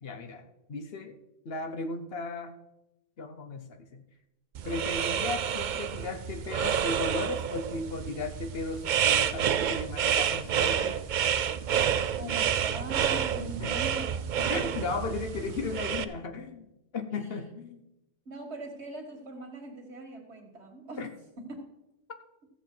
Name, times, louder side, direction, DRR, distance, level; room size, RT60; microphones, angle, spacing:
voice 1, 0.0-1.2 1.4-2.6 3.2-4.0 4.6-11.0 13.6-13.7 14.5-17.8 21.0-21.1, left 3 dB, 65° left, 7 dB, 1.1 m, -36 dB
sound 1, 4.5-16.0, right 8 dB, 55° right, 0.6 m, -29 dB
voice 2, 12.2-14.7 17.1-17.3 18.3-21.0 21.4-21.7, right 2 dB, 80° right, 3 dB, 2.1 m, -41 dB
14.0 x 7.3 x 4.5 m, 0.93 s
omnidirectional pair, 1.1 m